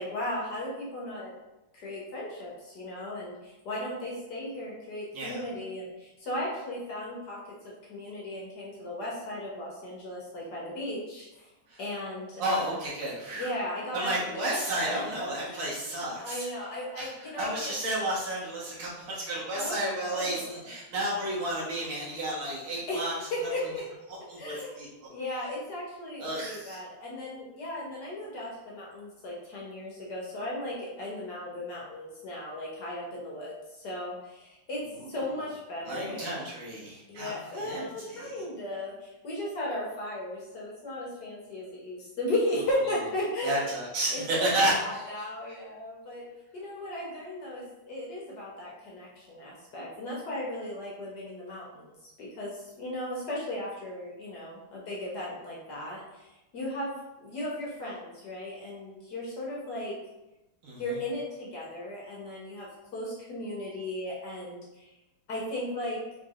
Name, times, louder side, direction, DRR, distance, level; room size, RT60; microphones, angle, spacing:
voice 1, 0.0-1.3 1.7-7.4 7.6-11.5 11.8-12.8 13.3-15.2 15.4-17.7 19.5-20.6 22.9-23.0 23.3-23.9 24.4-24.8 25.1-36.3 37.1-43.7 44.1-46.3 46.5-56.9 57.2-60.0 60.8-64.9 65.3-66.0, left 1 dB, 55° left, -5 dB, 1.4 m, -36 dB
voice 2, 12.4-13.5 13.9-16.5 17.0-17.1 17.4-23.1 24.1-24.9 26.2-26.8 35.0-35.2 35.8-38.3 43.4-45.1 60.6-60.8, right 1 dB, 75° right, -6 dB, 2.2 m, -32 dB
4.6 x 4.5 x 2.5 m, 0.98 s
omnidirectional pair, 2.3 m